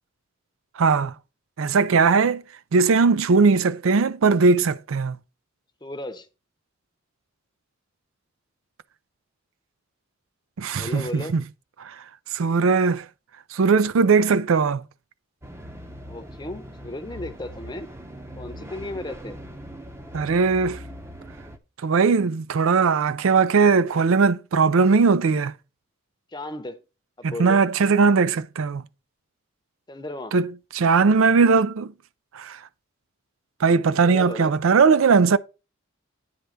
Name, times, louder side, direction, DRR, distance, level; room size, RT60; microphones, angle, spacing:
voice 1, 0.8-1.1 1.6-2.4 2.7-5.2 10.6-11.4 11.8-11.9 12.3-13.1 13.5-14.8 20.1-20.8 21.8-25.5 27.2-28.8 30.3-31.9 32.3-32.6 33.6-35.4, right 5 dB, 75° right, 0.4 m, -19 dB
voice 2, 5.8-6.3 10.8-11.4 16.1-17.9 18.4-19.4 26.3-26.8 27.2-27.6 29.9-30.4 34.0-34.5, left 1 dB, 20° left, 0.7 m, -34 dB
sound 1, 15.4-21.6, equal, 15° right, 0.7 m, -41 dB
9.5 x 3.4 x 6.3 m
head